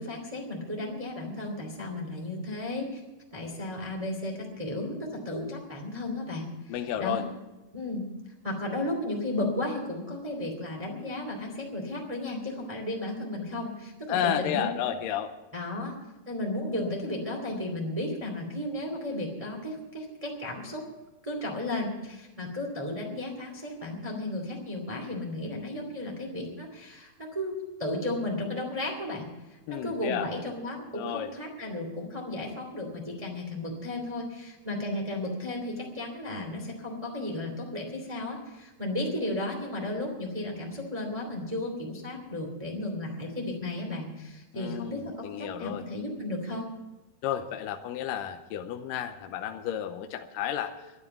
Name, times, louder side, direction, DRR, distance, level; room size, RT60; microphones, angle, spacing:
voice 1, 0.0-3.0 3.3-7.2 7.7-8.0 8.4-14.8 15.5-15.9 16.3-20.8 21.2-46.7, left 1 dB, 10° right, 0 dB, 2.0 m, -34 dB
voice 2, 6.7-7.2 14.1-15.3 29.7-30.3 30.9-31.3 44.5-45.8 47.2-50.7, left 10 dB, 75° left, 7 dB, 2.1 m, -32 dB
11.5 x 11.0 x 9.0 m, 1.1 s
omnidirectional pair, 4.6 m